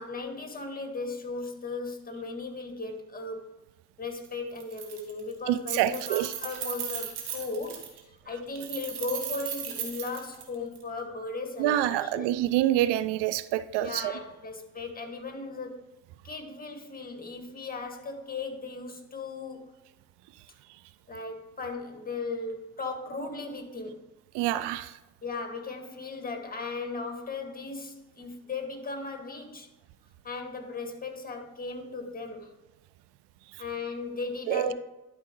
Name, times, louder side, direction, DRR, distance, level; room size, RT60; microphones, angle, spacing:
voice 1, 0.0-3.5 4.0-12.4 13.8-15.8 16.2-19.8 21.1-24.0 25.2-29.7 30.2-32.5 33.6-34.7, left 3 dB, 20° left, 1.8 m, -37 dB
Keys jangling, 4.1-4.3 4.6-5.3 5.6-8.0 8.5-10.8, right 9 dB, 85° right, 1.1 m, -37 dB
voice 2, 5.5-6.3 11.6-14.1 24.3-24.9 34.5-34.7, right 13 dB, 65° right, 0.6 m, -26 dB
11.5 x 4.6 x 3.1 m
hypercardioid pair, 45°, 45 cm